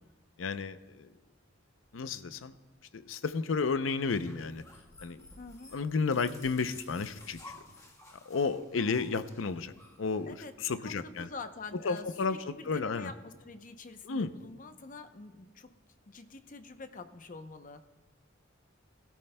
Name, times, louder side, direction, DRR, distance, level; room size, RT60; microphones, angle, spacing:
voice 1, 0.4-1.1 1.9-2.5 2.9-4.6 5.0-5.3 5.7-7.4 8.3-9.7 10.0-11.3 11.8-13.1 14.1-14.3, left 4 dB, 85° left, 12 dB, 0.6 m, -32 dB
sound 1, 3.9-10.9, left 2 dB, 15° left, 1.4 m, -54 dB
voice 2, 5.4-5.8 10.3-10.5 10.8-15.7 16.1-17.8, left 3 dB, 45° left, 8 dB, 0.7 m, -46 dB
21.0 x 13.0 x 2.2 m, 1.2 s
head